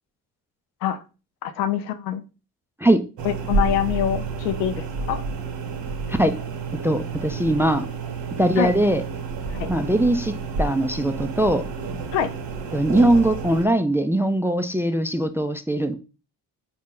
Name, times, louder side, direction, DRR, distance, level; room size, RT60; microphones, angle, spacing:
voice 1, 1.4-2.2 3.2-4.7 5.1-5.2 8.6-8.7 9.5-9.7 12.1-12.3, left 10 dB, 85° left, 9 dB, 0.6 m, -24 dB
sound 1, 3.2-13.7, right 4 dB, 65° right, 1.0 m, -30 dB
voice 2, 6.8-7.9 8.4-9.0 9.7-11.7 12.7-16.0, right 1 dB, 5° right, 8 dB, 0.3 m, -21 dB
4.3 x 2.6 x 3.6 m, 0.32 s
hypercardioid pair, 45°, 47 cm